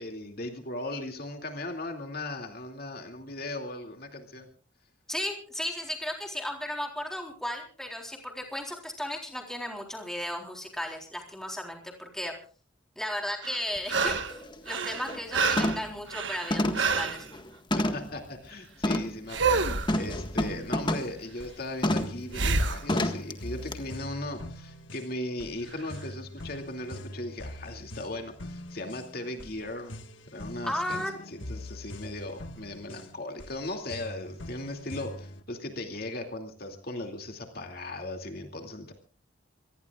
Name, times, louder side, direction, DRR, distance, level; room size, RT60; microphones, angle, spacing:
voice 1, 0.0-4.5 17.7-29.9 30.3-38.9, left 1 dB, 50° left, 4 dB, 2.5 m, -38 dB
voice 2, 5.1-12.4 13.0-14.2 14.7-17.3 30.6-31.1, left 1 dB, 5° left, 2 dB, 3.8 m, -35 dB
sound 1, 13.4-14.4 14.7-17.2 19.3-19.9 22.3-22.8 25.8-25.9, right 4 dB, 65° right, 1.3 m, -28 dB
sound 2, 13.8-13.9 14.3-14.5 14.9-15.2 15.6-16.0 16.5-18.2 18.8-19.2 19.9-21.2 21.8-22.2 22.9-23.3 23.7-23.8, left 1 dB, 25° left, 1.6 m, -29 dB
sound 3, 19.4-35.4, left 1 dB, 70° left, 1.6 m, -43 dB
26.5 x 19.0 x 2.4 m, 0.40 s
head